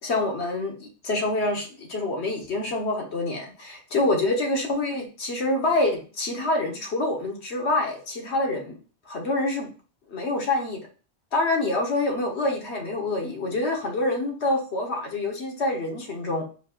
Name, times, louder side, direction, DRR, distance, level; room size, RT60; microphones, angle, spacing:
voice 1, 0.0-8.8 9.1-9.7 10.1-10.8 11.3-16.4, left 2 dB, 85° left, 1 dB, 1.4 m, -26 dB
4.8 x 2.4 x 4.4 m, 0.36 s
omnidirectional pair, 1.1 m